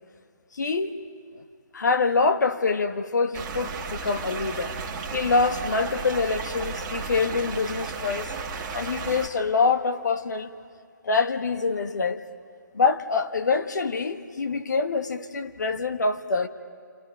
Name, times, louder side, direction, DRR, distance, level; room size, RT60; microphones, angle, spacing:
voice 1, 0.5-0.9 1.4-1.5 1.7-4.7 5.1-8.3 8.7-10.5 11.0-12.2 12.7-16.5, left 4 dB, 65° left, 8 dB, 1.4 m, -25 dB
sound 1, 3.3-9.3, right 5 dB, 20° right, 1.7 m, -34 dB
28.5 x 28.0 x 5.2 m, 2.1 s
figure-of-eight pair, 150°, 10 cm